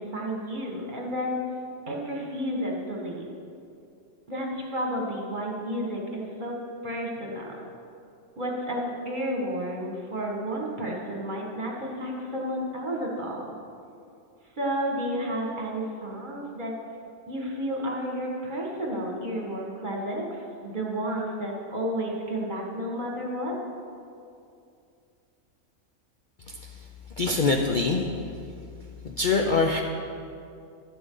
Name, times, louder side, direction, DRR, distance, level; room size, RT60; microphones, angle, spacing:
voice 1, 0.0-1.4 1.9-3.4 4.3-6.6 6.8-7.7 8.4-13.5 14.6-16.7 17.3-23.5, equal, 35° right, -2 dB, 1.8 m, -31 dB
voice 2, 27.2-28.0 29.0-29.8, left 3 dB, 50° left, 2 dB, 0.6 m, -23 dB
12.5 x 12.0 x 3.9 m, 2.5 s
omnidirectional pair, 1.4 m